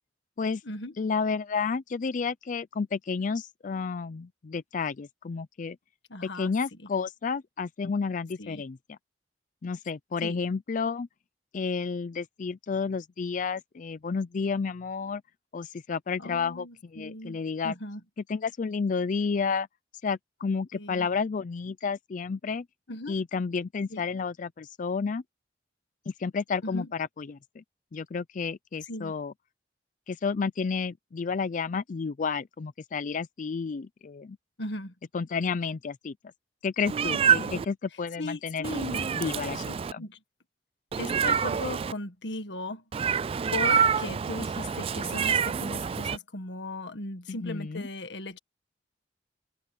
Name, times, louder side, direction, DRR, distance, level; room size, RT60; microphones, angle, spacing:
voice 1, 1.0-5.8 6.2-9.0 9.6-11.1 11.5-15.2 15.5-17.7 18.3-19.7 20.0-22.6 23.1-25.2 26.1-27.6 27.9-29.3 30.1-34.4 35.1-36.1 36.6-38.7 39.1-40.0 47.3-47.8, left 5 dB, 45° left, 0.4 m, -31 dB
voice 2, 6.1-6.5 8.4-8.6 10.2-10.4 16.2-17.4 17.6-18.0 20.7-21.1 22.9-23.1 23.9-24.0 26.6-26.9 28.9-29.1 34.6-34.9 37.4-37.6 38.2-39.2 40.0-40.2 40.9-42.8 43.5-48.4, left 2 dB, 90° left, 1.7 m, -37 dB
Meow, 36.8-37.6 38.6-39.9 40.9-41.9 42.9-46.2, right 7 dB, 35° right, 0.3 m, -27 dB
open air
head